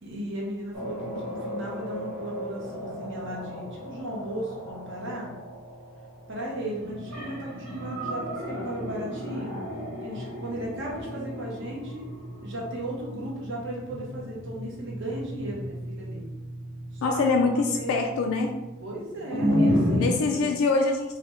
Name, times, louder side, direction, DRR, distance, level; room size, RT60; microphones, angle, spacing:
voice 1, 0.0-5.3 6.3-9.5 10.0-12.1 12.4-16.2 16.9-17.2 17.7-18.0 18.8-20.5, right 1 dB, 60° right, -3 dB, 0.9 m, -36 dB
sound 1, 0.7-20.0, equal, 85° right, 1.4 m, -33 dB
voice 2, 17.0-18.6 20.0-21.2, left 3 dB, 75° left, 2 dB, 0.3 m, -24 dB
4.0 x 2.1 x 3.0 m, 1.0 s
head